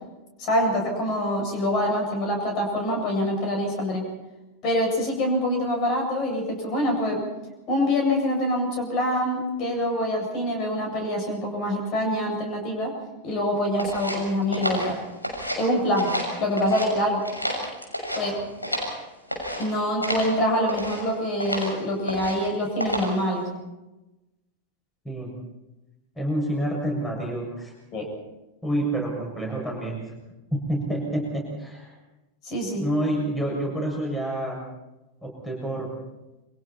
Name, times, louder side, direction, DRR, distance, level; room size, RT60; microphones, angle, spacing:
voice 1, 0.4-4.0 4.6-7.2 7.7-12.9 13.2-15.0 15.6-16.1 16.4-17.2 18.2-18.4 19.6-23.5 27.9-28.1 32.4-32.8, left 1 dB, 40° left, 1 dB, 7.9 m, -25 dB
sound 1, 13.8-15.7 15.9-16.9 17.2-19.0 19.3-19.6 20.0-20.3 20.7-21.0 21.4-21.7 22.1-22.5 22.8-23.2, equal, 85° left, 6.6 m, -30 dB
voice 2, 26.2-27.7 28.6-30.0 30.5-31.9 32.8-34.6 35.2-35.9, right 1 dB, 10° left, -1 dB, 7.0 m, -28 dB
28.5 x 25.0 x 4.4 m, 1.0 s
figure-of-eight pair, 90°, 0 cm